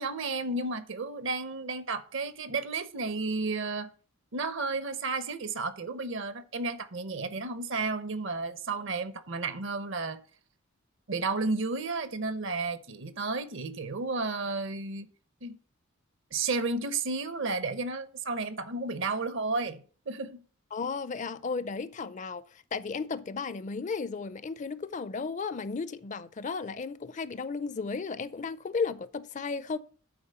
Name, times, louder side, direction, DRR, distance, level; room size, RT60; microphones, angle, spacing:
voice 1, 0.0-3.9 4.3-10.2 11.1-15.1 15.4-15.6 16.3-19.8 20.1-20.4, right 3 dB, 60° right, 0.8 m, -32 dB
voice 2, 20.7-29.8, left 4 dB, 35° left, 0.4 m, -34 dB
8.6 x 4.2 x 6.7 m
head